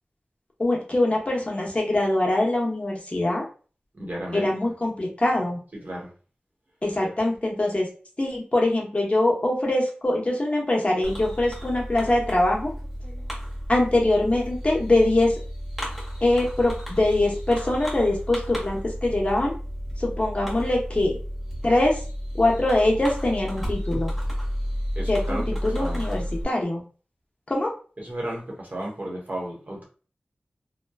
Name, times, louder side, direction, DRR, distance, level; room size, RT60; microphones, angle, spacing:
voice 1, 0.6-3.4 4.3-5.6 6.8-7.9 8.2-12.7 13.7-15.3 16.2-19.6 20.0-21.2 21.6-22.0 22.3-24.1 25.1-26.8 27.5-27.7, left 1 dB, 35° left, -2 dB, 0.9 m, -23 dB
voice 2, 3.9-4.5 5.7-6.1 7.0-7.1 24.9-26.0 28.0-29.8, right 1 dB, 50° right, -2 dB, 1.1 m, -34 dB
Fireworks, 11.0-26.4, equal, 5° right, 1.3 m, -32 dB
2.9 x 2.2 x 2.3 m, 0.38 s
wide cardioid pair, 60°, 4 cm